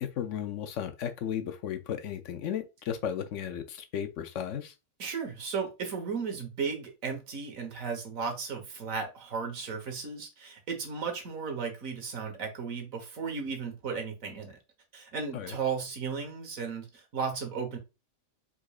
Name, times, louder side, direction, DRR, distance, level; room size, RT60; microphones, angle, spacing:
voice 1, 0.0-4.7 15.3-15.5, left 9 dB, 70° left, 0.9 m, -34 dB
voice 2, 5.0-14.6 14.9-17.8, right 5 dB, 75° right, 1.6 m, -35 dB
4.9 x 4.1 x 2.3 m
omnidirectional pair, 1.4 m